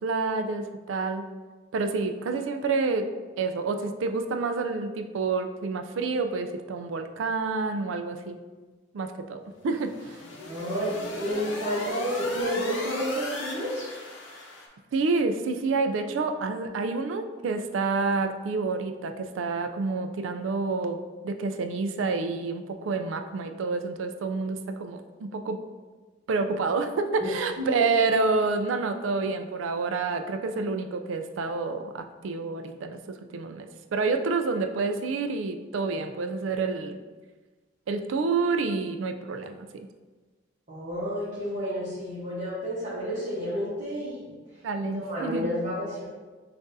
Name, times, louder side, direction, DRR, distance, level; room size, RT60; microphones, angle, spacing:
voice 1, 0.0-1.2 1.7-3.1 3.4-8.4 8.9-10.2 14.9-25.6 26.3-37.0 37.9-39.7 44.6-45.5, right 4 dB, 85° right, 7 dB, 0.4 m, -28 dB
sound 1, 9.7-14.7, left 2 dB, 75° left, 0.7 m, -37 dB
voice 2, 10.5-13.9 27.2-27.7 40.7-44.3 44.8-46.0, equal, 40° right, -11 dB, 1.0 m, -31 dB
6.0 x 2.5 x 2.6 m, 1.3 s
head